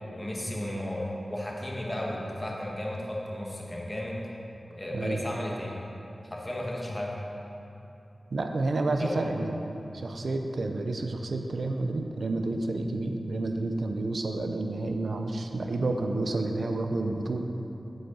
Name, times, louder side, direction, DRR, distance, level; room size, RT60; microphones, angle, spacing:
voice 1, 0.1-4.2 4.7-5.8 6.2-7.2 9.0-9.2, left 1 dB, 20° left, -3 dB, 1.6 m, -34 dB
voice 2, 4.9-5.2 8.3-17.5, right 2 dB, 80° right, 5 dB, 0.6 m, -30 dB
8.4 x 7.9 x 4.1 m, 3.0 s
cardioid pair, 45°, 0 cm